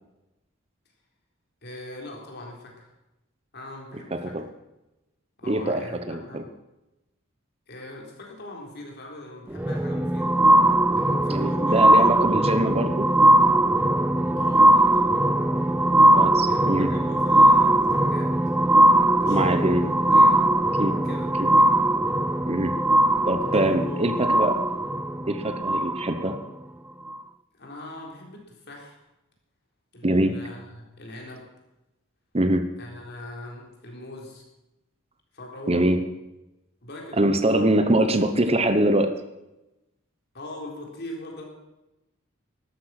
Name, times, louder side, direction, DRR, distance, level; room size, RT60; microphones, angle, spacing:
voice 1, 1.6-2.9 3.5-4.4 5.4-6.5 7.7-10.4 10.9-12.3 14.3-15.2 16.5-18.3 19.2-20.5 21.0-21.7 23.4-24.4 27.5-29.0 29.9-31.5 32.8-34.4 35.3-35.9 36.8-38.2 40.3-41.4, left 1 dB, 55° left, 0 dB, 3.9 m, -41 dB
voice 2, 5.5-5.8 6.1-6.4 11.3-13.1 16.1-16.9 19.3-19.9 20.8-20.9 21.4-21.5 22.5-22.7 23.3-24.6 25.3-26.4 30.0-30.4 32.3-32.6 35.7-36.0 37.2-39.2, right 1 dB, 30° right, 9 dB, 0.9 m, -23 dB
sound 1, 9.5-26.4 27.1-27.2, right 1 dB, 10° right, 0.5 m, -20 dB
12.5 x 12.5 x 6.0 m, 0.96 s
head